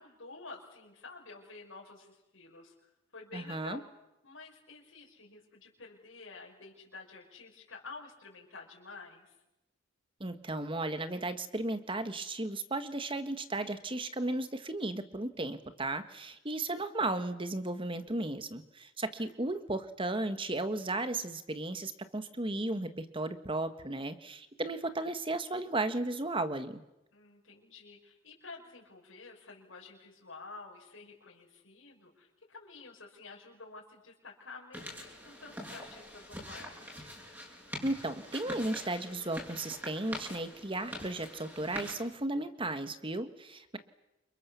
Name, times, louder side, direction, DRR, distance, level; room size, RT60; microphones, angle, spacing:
voice 1, 0.0-3.8 4.2-9.3 19.2-19.3 27.1-36.9, left 3 dB, 70° left, -2 dB, 5.5 m, -50 dB
voice 2, 3.3-3.8 10.2-26.8 37.8-43.8, right 2 dB, 25° right, 10 dB, 1.7 m, -35 dB
sound 1, 34.7-41.9, equal, 10° right, 6.9 m, -44 dB
29.0 x 26.0 x 7.1 m, 0.94 s
head